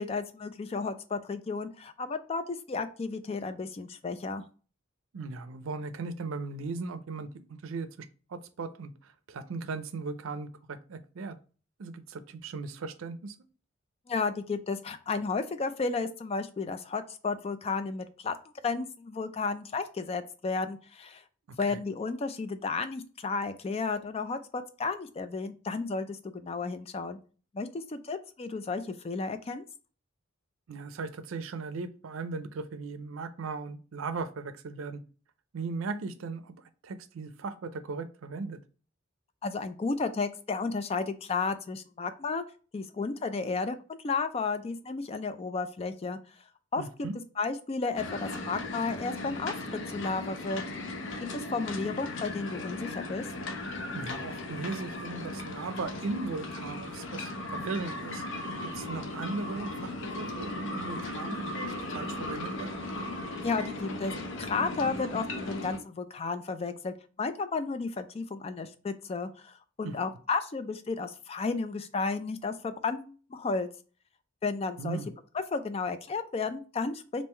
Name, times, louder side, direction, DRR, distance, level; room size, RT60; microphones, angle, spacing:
voice 1, 0.0-4.4 14.1-18.3 18.6-21.2 21.6-27.2 27.5-29.6 39.4-42.4 42.7-46.2 46.7-46.8 47.4-50.6 51.3-53.3 63.4-64.1 64.4-73.7 74.4-75.0 75.3-77.2, left 4 dB, 30° left, 11 dB, 0.3 m, -33 dB
voice 2, 5.1-11.4 11.8-13.3 21.5-21.8 30.7-35.0 35.5-36.5 36.8-38.6 46.8-47.2 53.9-62.8 69.8-69.9 74.8-75.1, right 4 dB, 85° right, 12 dB, 0.5 m, -38 dB
sound 1, 48.0-65.8, left 2 dB, 65° left, 0.6 m, -37 dB
3.6 x 2.5 x 4.3 m, 0.38 s
head